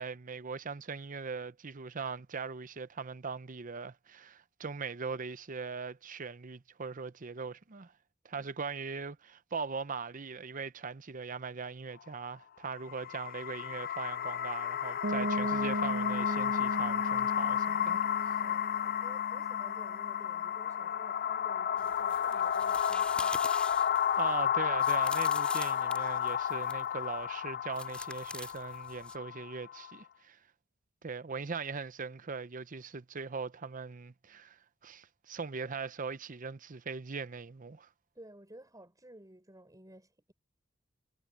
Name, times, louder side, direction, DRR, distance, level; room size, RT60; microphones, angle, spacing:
voice 1, 0.0-7.9 8.2-18.0 24.2-30.4 31.0-37.9, right 5 dB, 40° right, 0.7 m, -40 dB
sound 1, 12.8-30.0, left 9 dB, 50° left, 0.5 m, -32 dB
Piano, 15.0-20.7, right 1 dB, 65° right, 1.3 m, -37 dB
voice 2, 18.4-23.5 38.2-40.3, right 1 dB, 20° right, 5.7 m, -55 dB
sound 2, 21.8-26.9 27.7-29.1, left 1 dB, 5° left, 2.6 m, -45 dB
head